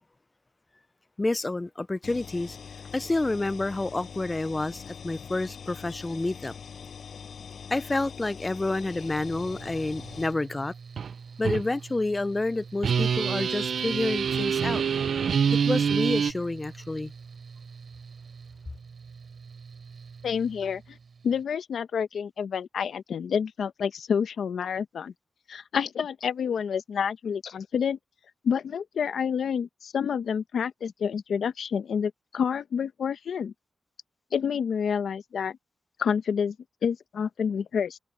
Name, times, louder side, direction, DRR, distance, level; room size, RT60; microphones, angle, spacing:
voice 1, 1.2-2.6 2.9-6.5 7.7-10.7 11.4-14.8 15.6-17.1, left 2 dB, 20° left, 0.4 m, -29 dB
sound 1, 2.0-10.3, left 6 dB, 70° left, 7.1 m, -43 dB
Mechanical fan, 8.9-21.4, right 5 dB, 60° right, 4.4 m, -46 dB
sound 2, 11.0-11.1 11.4-11.6 12.8-16.3, right 7 dB, 75° right, 0.4 m, -25 dB
voice 2, 20.2-21.0 21.2-25.1 25.5-28.0 28.4-33.5 34.3-35.6 36.0-36.5 36.8-38.0, left 7 dB, 90° left, 1.0 m, -28 dB
wide cardioid pair, 115°, 0 cm